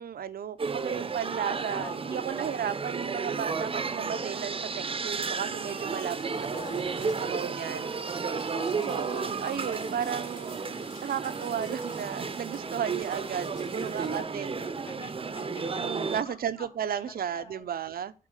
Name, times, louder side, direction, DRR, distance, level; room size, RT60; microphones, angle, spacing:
voice 1, 0.0-6.5 6.8-7.9 8.8-10.6 11.0-14.5 15.8-18.1, right 9 dB, 80° right, 0.7 m, -34 dB
sound 1, 0.6-16.2, right 5 dB, 40° right, 0.7 m, -33 dB
voice 2, 1.7-2.3 6.5-7.3 8.5-9.2 9.6-9.7 13.7-16.7 16.9-17.8, left 3 dB, 40° left, 3.1 m, -47 dB
sound 2, 5.0-14.2, left 3 dB, 60° left, 2.6 m, -52 dB
7.6 x 4.3 x 6.4 m
wide cardioid pair, 130°, 15 cm